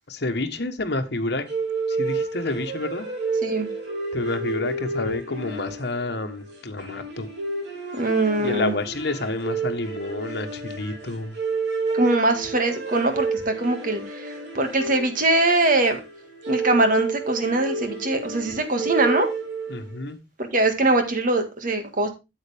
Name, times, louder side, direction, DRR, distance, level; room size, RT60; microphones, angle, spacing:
voice 1, 0.1-1.4 1.9-3.1 4.1-7.3 8.4-11.4 19.7-20.2, left 2 dB, 65° left, 1.2 m, -29 dB
sound 1, 1.5-20.0, right 4 dB, 70° right, 3.3 m, -30 dB
voice 2, 7.9-8.7 11.9-16.0 16.5-19.3 20.4-22.1, right 2 dB, 50° right, 1.8 m, -22 dB
8.9 x 8.0 x 3.5 m
head